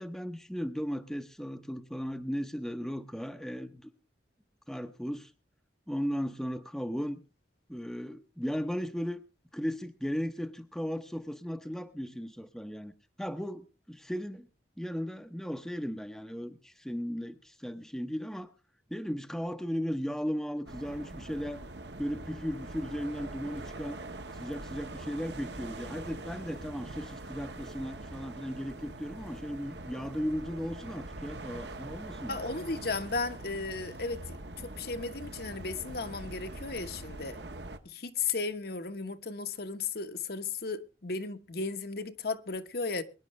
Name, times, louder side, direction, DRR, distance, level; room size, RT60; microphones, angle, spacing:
voice 1, 0.0-3.9 4.7-5.3 5.9-7.2 7.7-9.2 9.5-12.9 13.2-14.5 14.8-18.5 18.9-21.6 22.0-24.0 24.3-32.4, equal, ahead, 0.8 m, -36 dB
sound 1, 20.7-37.8, right 2 dB, 70° right, 1.3 m, -43 dB
voice 2, 32.3-37.4 37.8-43.0, left 4 dB, 55° left, 1.1 m, -35 dB
22.5 x 10.5 x 3.2 m
head